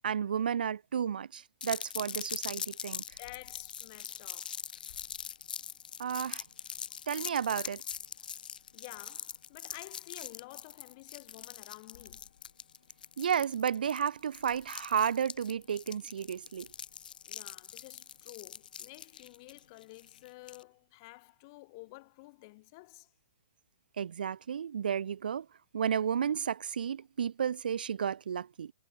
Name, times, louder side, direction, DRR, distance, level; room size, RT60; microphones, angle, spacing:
voice 1, 0.0-3.0 6.0-6.4 7.1-7.8 13.2-16.7 24.0-25.5 25.7-28.7, right 8 dB, 80° right, 0.8 m, -32 dB
sound 1, 1.6-20.6, left 8 dB, 70° left, 0.7 m, -43 dB
voice 2, 3.2-4.6 8.2-8.5 8.7-12.4 17.3-23.1, left 25 dB, 25° left, 1.4 m, -51 dB
hypercardioid pair, 175°, 5 cm